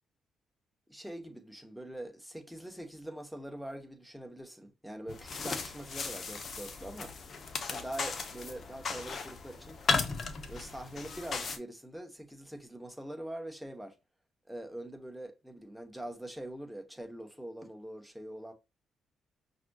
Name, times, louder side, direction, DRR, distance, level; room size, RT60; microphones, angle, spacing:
voice 1, 0.9-7.2 7.7-9.8 10.5-14.0 14.5-18.5, right 1 dB, ahead, 0.9 m, -43 dB
sound 1, 5.1-11.6, left 4 dB, 45° left, 0.7 m, -36 dB
5.8 x 2.7 x 2.3 m
cardioid pair, 90°, 0 cm